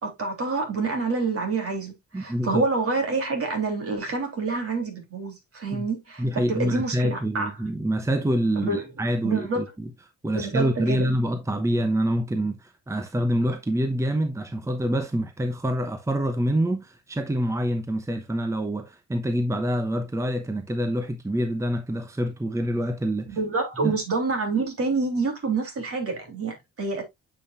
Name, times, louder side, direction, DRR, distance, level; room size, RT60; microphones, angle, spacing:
voice 1, 0.0-7.5 8.6-8.9 9.2-9.6 10.3-11.1 23.3-27.0, right 3 dB, 50° right, 3.5 m, -27 dB
voice 2, 2.1-2.6 5.7-5.9 6.2-9.9 10.2-23.4 23.8-23.9, equal, 10° right, 0.9 m, -26 dB
8.5 x 5.6 x 2.5 m
cardioid pair, 90°, 30 cm